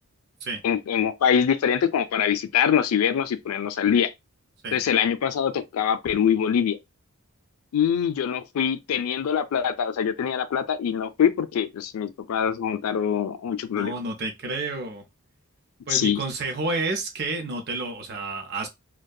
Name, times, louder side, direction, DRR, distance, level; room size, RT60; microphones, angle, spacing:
voice 1, 0.6-4.1 4.7-6.8 7.7-13.9 15.9-16.2, left 8 dB, 85° left, 0.4 m, -24 dB
voice 2, 13.8-15.0 15.9-18.7, right 3 dB, 50° right, 0.6 m, -30 dB
2.6 x 2.2 x 2.2 m
head